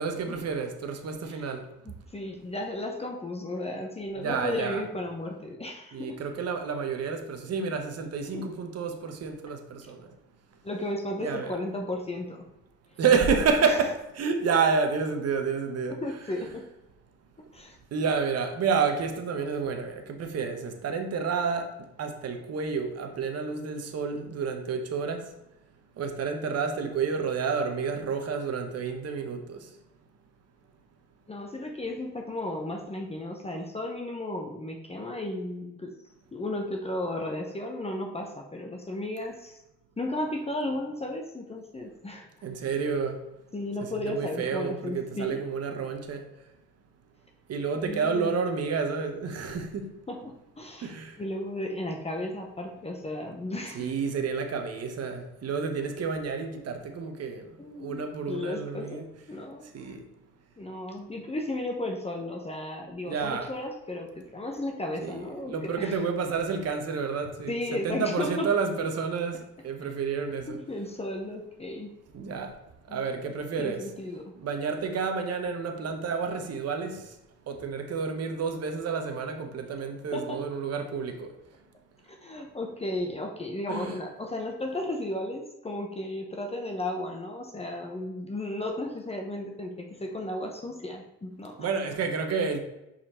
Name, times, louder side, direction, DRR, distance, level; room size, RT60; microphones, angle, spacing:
voice 1, 0.0-1.6 4.2-4.8 5.9-10.0 11.2-11.6 13.0-16.0 17.9-21.7 22.0-25.2 26.0-29.6 42.4-43.2 44.1-46.2 47.5-49.9 50.8-51.1 53.7-57.4 57.8-59.0 59.7-60.0 63.0-63.5 65.0-65.2 65.5-67.5 67.8-69.4 69.6-70.6 72.1-72.5 72.9-73.8 74.4-77.0 77.5-81.3 83.7-84.0 91.6-92.6, right 5 dB, 55° right, 1.0 m, -29 dB
voice 2, 1.8-6.2 8.2-8.5 10.6-12.5 13.6-13.8 15.9-16.7 17.5-17.8 31.3-35.9 36.3-39.6 40.0-42.3 43.5-45.4 47.8-48.4 50.1-53.9 57.6-59.9 60.6-66.0 67.5-68.5 70.5-71.9 72.9-73.1 73.6-74.3 80.1-80.4 82.1-91.7, left 1 dB, 20° left, 0.8 m, -34 dB
5.3 x 4.3 x 4.3 m
cardioid pair, 90°, 30 cm